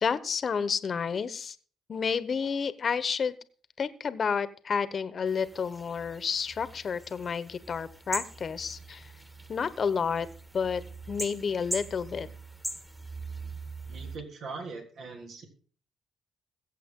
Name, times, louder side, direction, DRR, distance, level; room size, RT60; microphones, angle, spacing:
voice 1, 0.0-1.5 1.9-3.3 3.8-9.1 9.5-10.3 10.5-10.8 11.1-12.3, left 6 dB, 45° left, 14 dB, 1.1 m, -30 dB
sound 1, 5.3-14.2, right 1 dB, 5° right, 1.7 m, -41 dB
voice 2, 13.9-15.5, right 4 dB, 70° right, 1 dB, 3.5 m, -41 dB
21.5 x 8.2 x 3.8 m, 0.42 s
cardioid pair, 90°, 0 cm